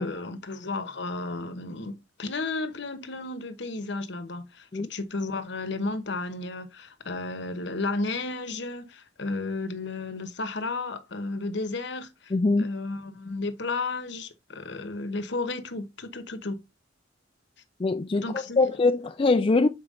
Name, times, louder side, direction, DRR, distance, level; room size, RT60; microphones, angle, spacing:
voice 1, 0.0-12.3 12.6-16.6 18.1-18.7, left 3 dB, 65° left, 1.0 m, -33 dB
voice 2, 12.3-12.7 17.8-19.7, left 3 dB, 30° left, 0.4 m, -23 dB
6.9 x 4.5 x 3.7 m
head